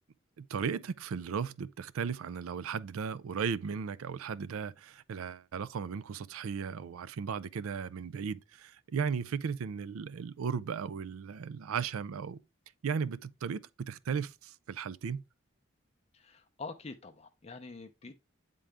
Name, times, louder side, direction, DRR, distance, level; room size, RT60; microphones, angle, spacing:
voice 1, 0.4-12.4 12.8-15.2, right 6 dB, 85° right, 0.4 m, -36 dB
voice 2, 16.1-18.1, left 3 dB, 30° left, 0.5 m, -45 dB
8.8 x 3.8 x 3.4 m
head